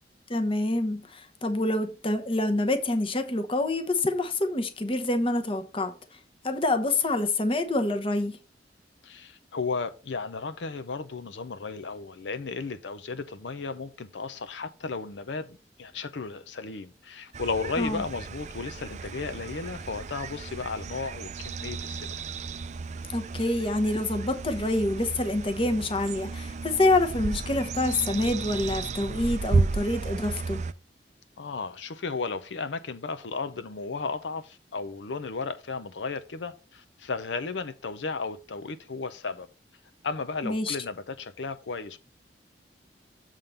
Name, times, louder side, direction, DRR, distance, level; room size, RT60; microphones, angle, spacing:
voice 1, 0.3-5.9 6.4-8.4 17.8-18.0 23.1-30.6 40.4-40.8, left 2 dB, 30° left, 0.9 m, -26 dB
voice 2, 9.0-22.2 31.4-39.5 40.0-42.0, left 4 dB, 85° left, 0.7 m, -34 dB
sound 1, 17.3-30.7, right 4 dB, 40° right, 0.4 m, -33 dB
7.3 x 3.7 x 6.6 m
head